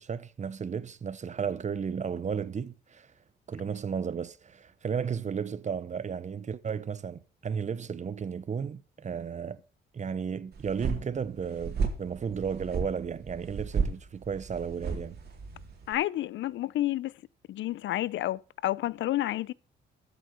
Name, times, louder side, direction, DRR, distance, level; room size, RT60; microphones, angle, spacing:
voice 1, 0.0-3.1 3.5-9.6 9.9-15.2, right 6 dB, 35° right, 1.1 m, -34 dB
sound 1, 10.5-15.9, right 5 dB, 55° right, 4.1 m, -34 dB
voice 2, 15.9-17.1 17.5-19.5, left 14 dB, 75° left, 0.6 m, -30 dB
13.0 x 8.4 x 5.7 m
cardioid pair, 90°, 20 cm